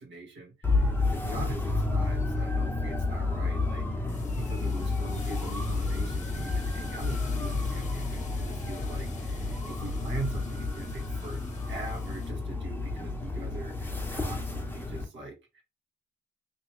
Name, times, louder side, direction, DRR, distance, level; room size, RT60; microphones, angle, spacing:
voice 1, 0.0-11.4 11.7-15.6, right 2 dB, 70° right, 1.5 m, -42 dB
sound 1, 0.6-15.0, left 3 dB, 10° left, 0.9 m, -30 dB
sound 2, 2.8-2.9 3.3-12.3, left 4 dB, 35° left, 1.1 m, -50 dB
3.1 x 2.9 x 3.1 m
cardioid pair, 90°, 20 cm